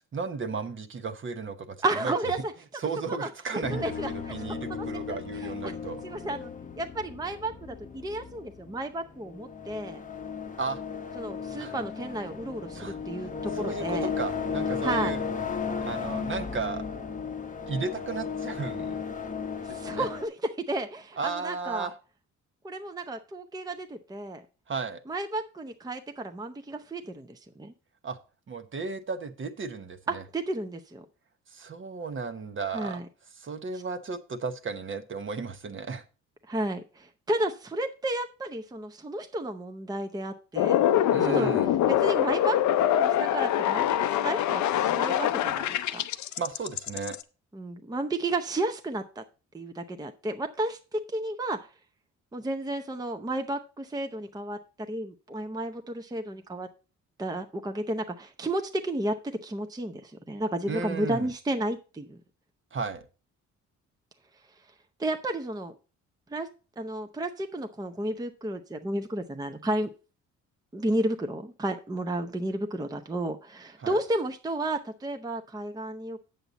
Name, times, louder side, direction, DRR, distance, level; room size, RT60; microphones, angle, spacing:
voice 1, 0.0-1.8 2.0-2.1 2.8-6.0 10.6-10.8 11.6-11.7 12.7-13.0 13.5-15.2 15.5-16.8 17.7-19.1 19.7-20.1 21.2-21.9 24.7-25.0 28.0-28.2 28.5-30.2 31.5-33.0 33.4-36.0 41.1-41.7 46.4-47.2 60.7-61.3 62.7-63.0 73.8-74.0, right 4 dB, 40° right, 9 dB, 1.0 m, -34 dB
voice 2, 1.8-2.5 3.1-3.3 3.7-4.3 4.7-5.7 6.0-6.5 6.8-10.0 11.2-14.1 14.8-15.2 19.6-20.3 20.6-21.9 22.6-24.4 25.1-27.7 30.1-31.0 32.7-33.0 33.7-33.8 36.5-40.8 41.2-41.5 41.9-42.6 42.9-46.0 47.5-49.2 49.5-51.7 52.3-54.6 54.9-56.7 57.2-62.2 65.0-65.7 66.3-66.5 66.8-69.9 70.7-76.2, right 1 dB, 15° right, 6 dB, 0.7 m, -32 dB
sound 1, 3.6-20.3, left 6 dB, 25° left, 0.8 m, -35 dB
sound 2, 40.6-47.2, left 11 dB, 70° left, 0.6 m, -24 dB
7.8 x 7.1 x 4.0 m, 0.34 s
cardioid pair, 90°, 30 cm